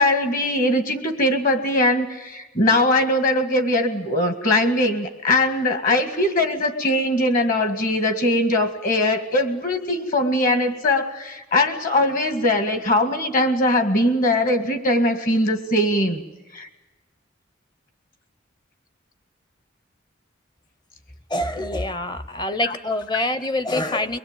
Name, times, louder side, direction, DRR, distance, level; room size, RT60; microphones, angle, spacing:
voice 1, 0.0-16.2 16.5-16.7 22.6-22.7 23.1-23.2, left 1 dB, 45° left, 7 dB, 2.2 m, -21 dB
voice 2, 21.3-24.2, left 1 dB, 20° left, 13 dB, 0.8 m, -25 dB
23.5 x 21.5 x 9.1 m, 1.1 s
head